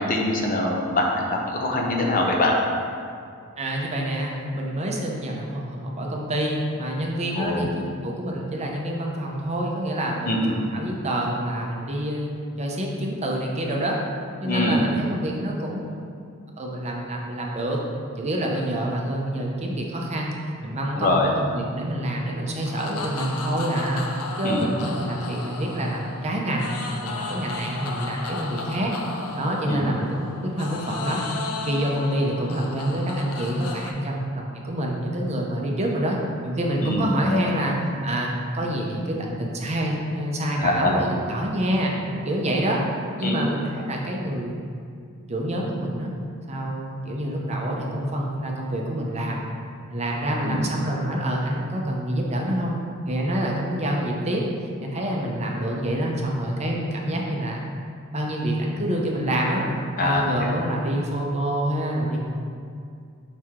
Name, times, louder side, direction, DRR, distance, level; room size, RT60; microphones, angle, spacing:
voice 1, 0.0-2.5 7.4-7.6 10.3-10.5 14.4-14.8 20.9-21.3 24.4-24.7 29.7-29.9 36.8-37.4 40.6-40.9 43.2-43.4 50.4-50.6 60.0-60.6, left 2 dB, 40° left, 0 dB, 0.7 m, -24 dB
voice 2, 3.6-12.3 12.6-14.0 14.4-16.0 16.6-17.8 18.2-20.3 20.6-24.0 24.4-26.7 27.0-28.9 29.3-31.3 31.7-37.7 38.0-41.9 42.2-42.8 43.2-44.5 45.3-46.1 46.5-49.4 49.9-54.4 54.8-57.6 58.1-59.6 60.0-62.2, right 1 dB, 30° right, -1 dB, 0.7 m, -27 dB
sound 1, 22.6-33.9, left 3 dB, 80° left, 0.6 m, -34 dB
5.8 x 4.6 x 3.6 m, 2.3 s
head